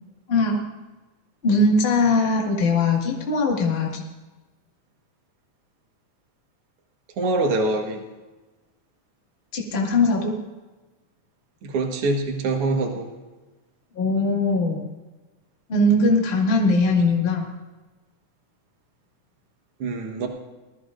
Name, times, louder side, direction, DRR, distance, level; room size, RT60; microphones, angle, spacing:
voice 1, 0.3-0.6 1.4-4.0 9.5-10.3 13.9-14.8 15.7-17.5, left 2 dB, 25° left, -1 dB, 1.7 m, -20 dB
voice 2, 7.2-8.0 11.6-13.1 19.8-20.3, right 2 dB, 55° right, 2 dB, 2.2 m, -24 dB
20.5 x 14.0 x 2.6 m, 1.2 s
omnidirectional pair, 3.4 m